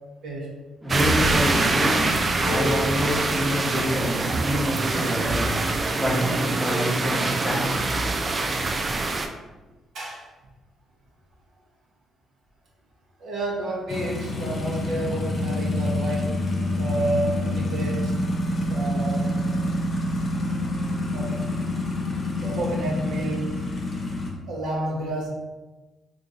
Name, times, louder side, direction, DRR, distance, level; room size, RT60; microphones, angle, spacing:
voice 1, 0.8-8.8, left 1 dB, ahead, 0.9 m, -28 dB
sound 1, 0.9-9.3, right 3 dB, 35° right, 0.4 m, -24 dB
sound 2, 2.3-8.4, left 2 dB, 70° left, 0.4 m, -38 dB
voice 2, 13.2-16.5 16.8-18.2 18.7-19.4 21.1-21.4 22.4-23.5 24.5-25.3, right 1 dB, 70° right, 1.0 m, -30 dB
sound 3, 13.9-24.3, left 1 dB, 45° left, 0.7 m, -27 dB
2.9 x 2.5 x 3.9 m
cardioid pair, 90°, 0 cm